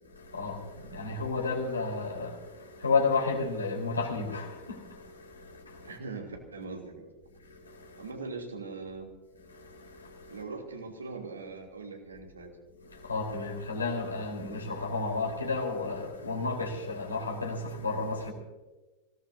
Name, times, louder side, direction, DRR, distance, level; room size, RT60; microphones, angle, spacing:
voice 1, 0.0-6.0 7.3-8.1 9.4-10.4 12.8-18.3, left 3 dB, 75° left, 4.1 m, -33 dB
voice 2, 5.8-7.1 8.0-9.1 10.3-12.5, right 3 dB, 75° right, 3.0 m, -41 dB
24.5 x 18.0 x 2.8 m
figure-of-eight pair, 90°, 0 cm